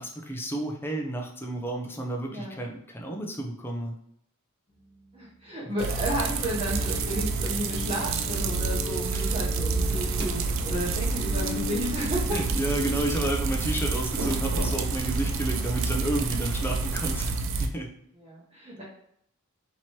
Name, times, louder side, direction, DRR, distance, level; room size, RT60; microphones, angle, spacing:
voice 1, 0.0-4.0 5.6-5.7 9.1-9.3 12.3-17.3 17.6-17.9, right 1 dB, 10° left, 1 dB, 0.5 m, -31 dB
sound 1, 4.7-12.9, left 3 dB, 35° left, 1.1 m, -41 dB
voice 2, 5.1-12.2 12.7-12.9 18.2-18.8, equal, 25° right, -7 dB, 0.9 m, -33 dB
sound 2, 5.8-17.7, right 4 dB, 60° right, 0.4 m, -29 dB
sound 3, 9.8-17.3, equal, 80° right, 0.8 m, -37 dB
3.0 x 3.0 x 4.2 m, 0.71 s
head